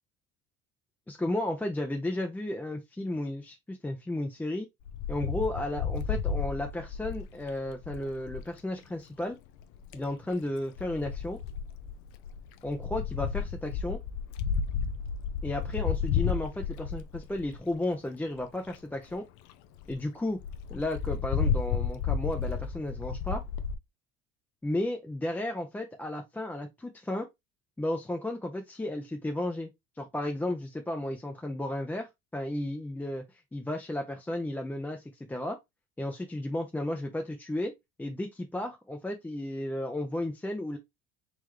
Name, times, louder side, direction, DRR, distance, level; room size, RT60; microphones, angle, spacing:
voice 1, 1.1-4.7 5.1-9.4 9.9-11.4 12.6-14.0 15.4-19.2 19.9-20.4 20.7-23.4 24.6-27.3 27.8-29.7 30.0-33.2 33.5-35.6 36.0-37.7 38.0-40.8, left 1 dB, 5° left, 0.4 m, -33 dB
Wind, 4.9-8.5 9.6-10.1 10.8-17.7 18.4-18.5 18.7-18.8 19.1-19.2 19.5-19.6 19.8-20.0 20.4-23.7, left 7 dB, 75° left, 0.6 m, -32 dB
3.8 x 3.0 x 3.1 m
supercardioid pair, 110°, 30 cm